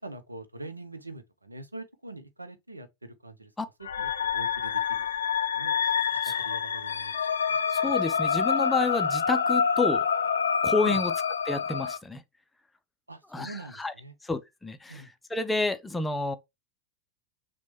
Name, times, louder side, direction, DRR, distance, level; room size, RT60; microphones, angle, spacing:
voice 1, 0.0-3.5 3.8-5.8 6.1-7.6 10.8-11.0 13.1-14.1 14.9-15.1, right 2 dB, 80° right, 0.6 m, -44 dB
sound 1, 3.8-12.0, left 6 dB, 70° left, 0.4 m, -27 dB
voice 2, 7.7-10.1 10.6-11.1 11.5-12.2 13.3-13.9 14.2-15.0 15.3-16.4, left 3 dB, 10° left, 0.4 m, -29 dB
5.9 x 2.2 x 3.0 m
figure-of-eight pair, 90°, 0 cm